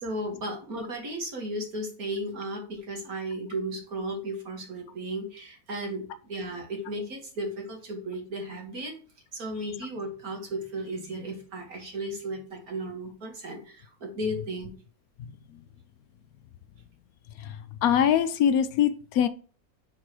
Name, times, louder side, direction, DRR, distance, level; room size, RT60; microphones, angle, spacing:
voice 1, 0.0-8.9 9.3-14.7, right 1 dB, 70° right, 2.2 m, -35 dB
voice 2, 17.4-19.3, left 9 dB, 75° left, 1.1 m, -23 dB
4.9 x 4.6 x 6.0 m
omnidirectional pair, 1.6 m